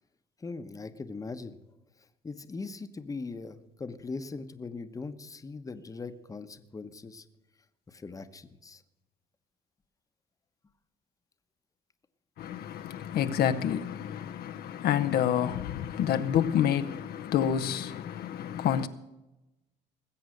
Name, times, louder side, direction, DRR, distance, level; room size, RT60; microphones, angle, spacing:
voice 1, 0.4-1.6 2.2-7.2 7.9-8.8, left 3 dB, 20° left, 1.0 m, -40 dB
voice 2, 12.4-18.9, left 9 dB, 65° left, 0.8 m, -28 dB
20.0 x 8.0 x 6.5 m
cardioid pair, 110°, 17 cm